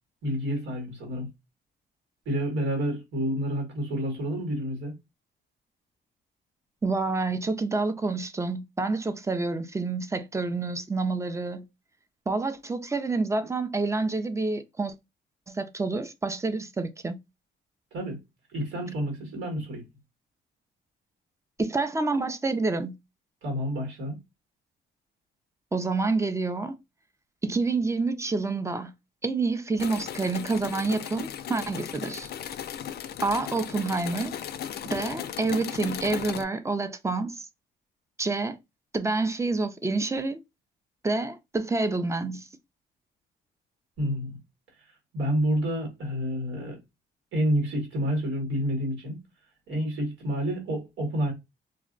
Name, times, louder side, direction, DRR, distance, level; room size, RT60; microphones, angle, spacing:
voice 1, 0.2-1.3 2.2-4.9 17.9-18.2 18.5-19.9 23.4-24.2 44.0-44.4 45.1-46.8 47.3-49.2 49.7-51.3, equal, 90° right, 1.5 m, -29 dB
voice 2, 6.8-11.6 12.3-14.9 15.5-17.2 21.6-23.0 25.7-26.8 27.4-28.9 29.2-32.3 33.2-34.3 34.9-37.5 38.2-38.6 38.9-40.4 41.0-42.5, right 3 dB, 15° right, 0.4 m, -28 dB
sound 1, 29.8-36.4, left 10 dB, 55° left, 0.4 m, -36 dB
2.6 x 2.1 x 3.7 m
cardioid pair, 90°, 20 cm